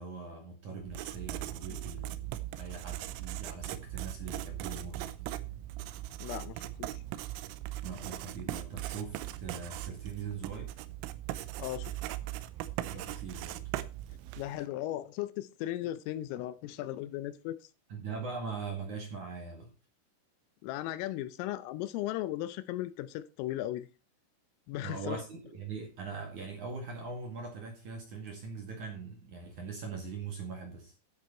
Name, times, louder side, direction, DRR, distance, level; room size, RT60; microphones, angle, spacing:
voice 1, 0.0-5.1 7.8-10.7 12.9-13.6 17.9-19.7 24.8-30.9, right 4 dB, 50° right, 2.5 m, -41 dB
Writing, 0.8-14.6, right 15 dB, 85° right, 3.4 m, -39 dB
voice 2, 6.2-7.0 11.6-11.9 14.4-17.6 20.6-23.9 24.7-25.2, left 14 dB, 80° left, 3.3 m, -36 dB
12.5 x 8.3 x 4.4 m
omnidirectional pair, 6.0 m